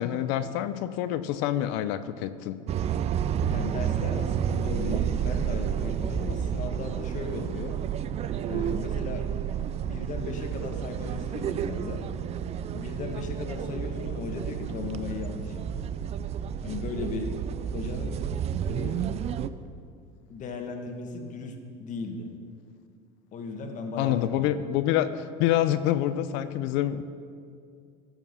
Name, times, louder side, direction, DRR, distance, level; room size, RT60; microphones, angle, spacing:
voice 1, 0.0-2.6 24.0-27.0, left 12 dB, 65° left, 12 dB, 0.6 m, -27 dB
sound 1, 2.7-19.5, right 9 dB, 30° right, 0.4 m, -30 dB
voice 2, 3.5-7.8 8.5-9.3 9.6-12.1 12.7-15.7 16.6-17.3 17.7-18.2 18.7-19.2 20.3-22.3 23.3-24.6, left 4 dB, 40° left, 3 dB, 1.6 m, -36 dB
14.5 x 7.2 x 5.7 m, 2.3 s
supercardioid pair, 130°, 20 cm